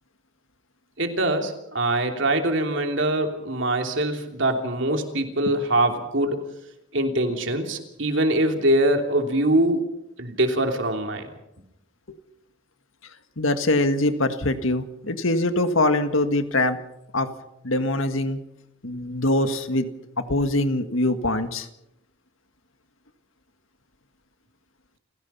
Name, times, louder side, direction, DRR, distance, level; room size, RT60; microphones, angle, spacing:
voice 1, 1.0-6.4 6.9-9.9 10.2-11.3, right 1 dB, 65° right, 4 dB, 3.1 m, -23 dB
voice 2, 13.4-16.8 17.1-17.3 17.6-18.4 18.8-19.9 20.2-21.7, left 2 dB, 80° left, 8 dB, 1.8 m, -23 dB
29.5 x 16.0 x 5.6 m, 0.83 s
head